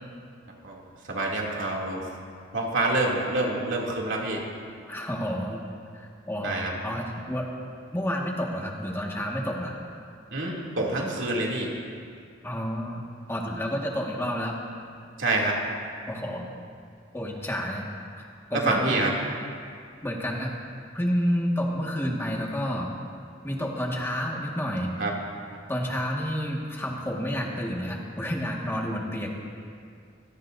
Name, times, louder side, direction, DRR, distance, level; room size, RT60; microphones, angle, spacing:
voice 1, 1.1-2.1 2.5-4.4 6.4-6.7 10.3-11.7 15.2-15.6 18.5-19.1 25.0-25.1 25.5-25.6, right 2 dB, 75° right, -2 dB, 2.8 m, -27 dB
voice 2, 4.9-5.6 5.9-6.5 6.8-7.5 7.9-9.8 12.4-13.0 13.3-14.6 16.1-16.5 17.1-17.9 18.2-18.3 18.5-19.2 20.0-20.5 20.9-22.9 23.4-24.9 25.7-29.3, equal, 15° left, -2 dB, 1.8 m, -29 dB
25.5 x 17.0 x 2.7 m, 2.2 s
head